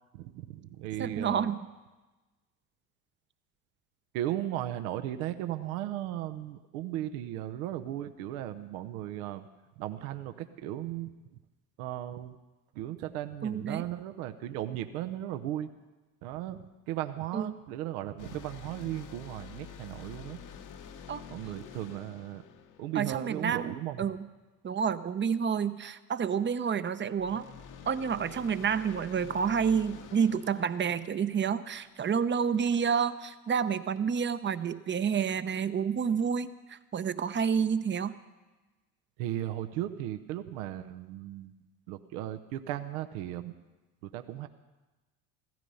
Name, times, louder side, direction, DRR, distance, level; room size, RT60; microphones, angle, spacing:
voice 1, 0.1-1.5 4.1-9.5 9.8-11.4 11.8-12.4 12.7-15.7 16.2-20.4 21.3-22.4 22.8-24.1 39.2-41.5 41.9-43.6 44.0-44.5, right 13 dB, 70° right, 9 dB, 0.9 m, -36 dB
voice 2, 1.0-1.6 13.4-13.8 17.3-17.5 21.1-21.2 23.0-24.2 24.6-27.4 27.9-38.1, right 7 dB, 25° right, 13 dB, 0.8 m, -29 dB
sound 1, 18.2-23.7 27.2-31.9, left 7 dB, 45° left, 1.1 m, -49 dB
15.5 x 14.0 x 5.5 m, 1.2 s
hypercardioid pair, 75°, 45 cm